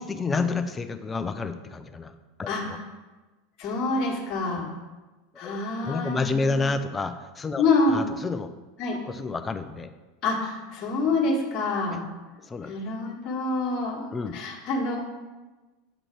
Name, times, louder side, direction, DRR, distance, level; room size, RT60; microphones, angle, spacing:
voice 1, 0.0-2.1 2.4-2.8 4.5-4.6 5.4-5.6 5.8-8.5 8.9-9.9 11.9-12.0 12.4-12.7 14.1-14.4, left 4 dB, 20° left, 9 dB, 0.5 m, -30 dB
voice 2, 3.6-4.7 5.4-6.6 7.6-8.0 8.8-9.0 10.2-12.0 12.7-14.1 14.3-15.1, left 3 dB, 45° left, -2 dB, 1.5 m, -26 dB
7.9 x 3.8 x 4.7 m, 1.2 s
figure-of-eight pair, 80°, 0 cm